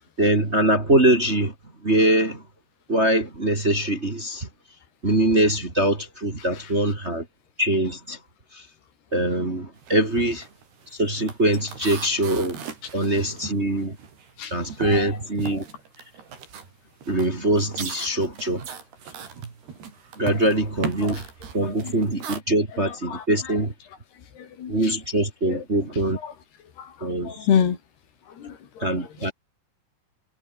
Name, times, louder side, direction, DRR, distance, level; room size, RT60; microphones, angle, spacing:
voice 1, 0.2-1.5 1.8-2.4 2.9-4.5 5.0-7.2 7.6-8.2 8.5-8.6 9.1-10.5 10.9-12.6 12.9-14.0 14.5-15.7 17.1-18.6 20.2-21.2 21.5-23.7 24.7-26.2 27.0-27.5 28.8-29.3, right 1 dB, 20° right, 2.3 m, -23 dB
sound 1, 9.8-10.0 10.3-14.4 14.7-22.4, right 7 dB, 80° right, 6.2 m, -38 dB
voice 2, 14.8-15.1 20.3-20.4 21.0-21.2 21.6-22.0 22.8-23.6 24.4-24.9 25.5-25.6 26.1-26.3 26.8-27.8 28.3-29.3, left 8 dB, 80° left, 5.3 m, -29 dB
omnidirectional pair, 4.6 m